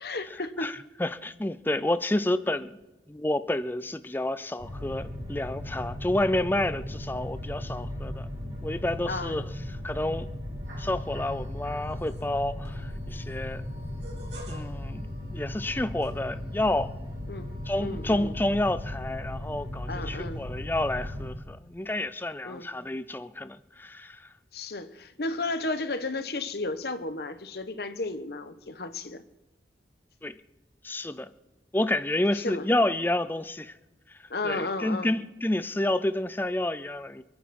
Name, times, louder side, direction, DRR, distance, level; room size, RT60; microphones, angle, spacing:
voice 1, 0.0-0.7 9.1-9.4 17.3-17.5 17.8-18.3 19.9-20.4 22.4-22.7 24.5-29.2 32.3-32.7 34.3-35.1, left 2 dB, 60° left, 1.1 m, -33 dB
voice 2, 0.6-2.8 3.1-9.5 9.8-10.3 10.8-13.7 14.5-15.1 15.3-16.9 17.7-24.3 30.2-30.3 30.8-31.3 31.7-33.8 34.4-37.2, left 1 dB, 10° left, 0.5 m, -29 dB
sound 1, 4.6-21.3, left 1 dB, 35° right, 3.9 m, -37 dB
sound 2, 10.6-12.3 12.6-16.6 17.0-18.5, equal, 75° right, 3.7 m, -48 dB
28.0 x 10.0 x 4.3 m
head